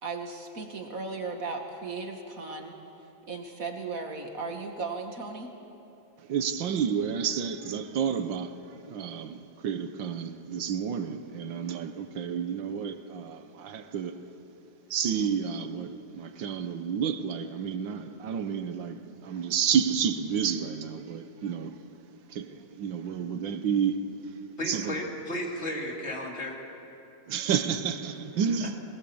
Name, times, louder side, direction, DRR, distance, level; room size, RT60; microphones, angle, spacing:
voice 1, 0.0-2.8 3.3-5.5, right 4 dB, 50° right, 2.1 m, -36 dB
voice 2, 6.2-8.6 8.9-14.2 14.9-21.7 22.3-24.0 24.7-25.0 27.3-28.8, right 7 dB, 90° right, 1.8 m, -30 dB
voice 3, 24.6-26.6 28.6-28.7, left 1 dB, 35° left, 2.8 m, -34 dB
22.5 x 20.0 x 7.1 m
omnidirectional pair, 2.0 m